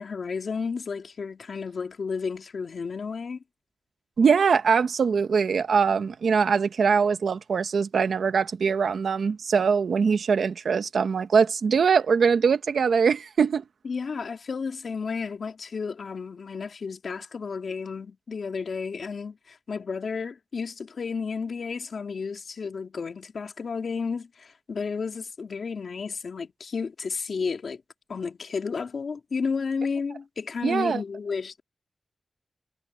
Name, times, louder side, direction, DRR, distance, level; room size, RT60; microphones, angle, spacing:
voice 1, 0.0-3.4 13.8-27.8 28.1-31.6, left 5 dB, 75° left, 2.7 m, -32 dB
voice 2, 4.2-13.6 30.6-31.0, right 6 dB, 90° right, 1.3 m, -22 dB
cardioid pair, 55°, 0 cm